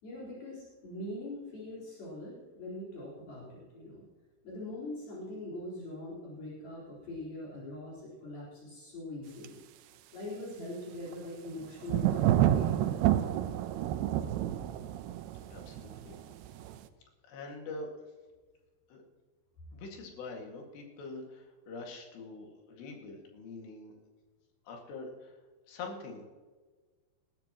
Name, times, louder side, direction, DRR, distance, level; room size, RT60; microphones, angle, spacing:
voice 1, 0.0-4.1 4.4-9.6 10.1-12.2 12.5-12.7, left 1 dB, 60° left, -7 dB, 6.0 m, -42 dB
sound 1, 9.4-9.5 11.1-11.2 11.5-11.6 11.9-16.8, right 12 dB, 80° right, 2.6 m, -29 dB
voice 2, 15.5-16.1 17.3-17.9 18.9-19.0 19.7-23.9 24.7-25.3 25.7-26.3, left 3 dB, 85° left, 1 dB, 4.3 m, -44 dB
20.5 x 13.5 x 3.0 m, 1.4 s
omnidirectional pair, 4.8 m